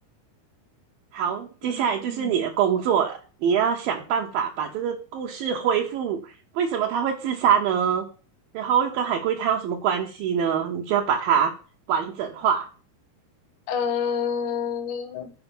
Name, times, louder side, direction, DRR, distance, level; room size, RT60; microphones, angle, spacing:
voice 1, 1.1-8.0 8.5-11.5 11.9-12.7, right 8 dB, 70° right, 0 dB, 2.6 m, -24 dB
voice 2, 1.7-2.3 13.7-15.3, left 7 dB, 60° left, 6 dB, 2.4 m, -28 dB
8.0 x 5.5 x 7.1 m, 0.37 s
omnidirectional pair, 4.6 m